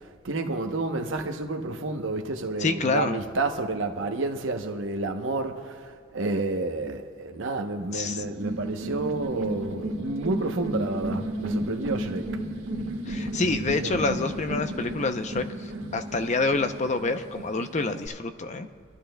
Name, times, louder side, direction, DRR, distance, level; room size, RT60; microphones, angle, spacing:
voice 1, 0.2-12.3 13.3-14.0, right 2 dB, 70° right, 0.9 m, -30 dB
voice 2, 2.6-3.2 7.9-8.2 13.1-18.7, left 3 dB, 35° left, 0.6 m, -27 dB
sound 1, 8.1-18.1, right 1 dB, 85° right, 1.6 m, -33 dB
26.0 x 12.5 x 2.2 m
head